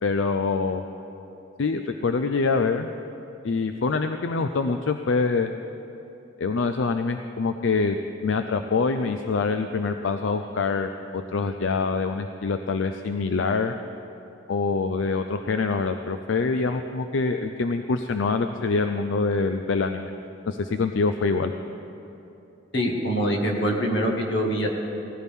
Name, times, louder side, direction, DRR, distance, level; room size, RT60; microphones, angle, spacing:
voice 1, 0.0-0.8 1.6-2.9 3.4-5.5 6.4-13.7 14.5-20.1 20.5-21.5, left 4 dB, 85° left, 7 dB, 0.5 m, -25 dB
voice 2, 22.7-24.7, equal, 65° left, 1 dB, 1.8 m, -24 dB
18.5 x 15.0 x 3.6 m, 2.9 s
head